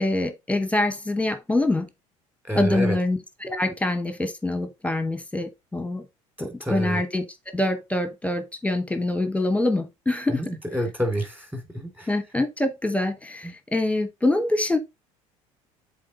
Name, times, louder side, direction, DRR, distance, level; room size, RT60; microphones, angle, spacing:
voice 1, 0.0-1.9 2.5-6.0 6.4-7.2 7.5-10.4 12.1-14.8, left 2 dB, 10° left, 1.2 m, -25 dB
voice 2, 2.4-3.0 6.4-7.0 10.3-12.2 13.4-13.5, equal, 10° right, 2.8 m, -28 dB
7.6 x 3.8 x 3.9 m
hypercardioid pair, 65°, 17 cm